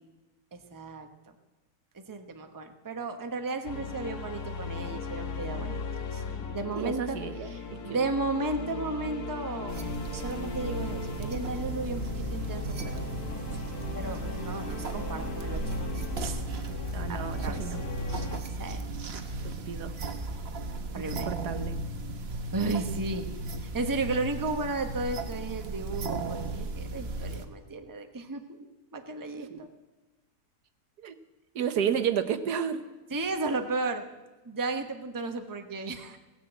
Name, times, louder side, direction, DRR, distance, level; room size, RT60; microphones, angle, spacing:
voice 1, 0.5-1.3 1.9-6.2 6.5-9.8 10.1-13.0 13.9-15.9 16.2-16.4 17.1-17.7 18.6-18.8 20.9-21.3 22.5-23.3 23.6-28.6 28.9-29.7 33.1-34.0 34.4-36.2, right 3 dB, 15° right, 6 dB, 0.9 m, -34 dB
sound 1, 3.7-18.4, left 5 dB, 70° left, 1.7 m, -38 dB
voice 2, 6.8-8.0 16.9-17.8 19.4-19.9 21.0-21.8 29.4-29.6 31.0-31.1 31.5-32.8, right 8 dB, 80° right, 10 dB, 1.5 m, -32 dB
sound 2, 9.7-27.4, right 2 dB, 45° right, 1.1 m, -35 dB
17.0 x 10.0 x 8.1 m, 1.2 s
omnidirectional pair, 1.7 m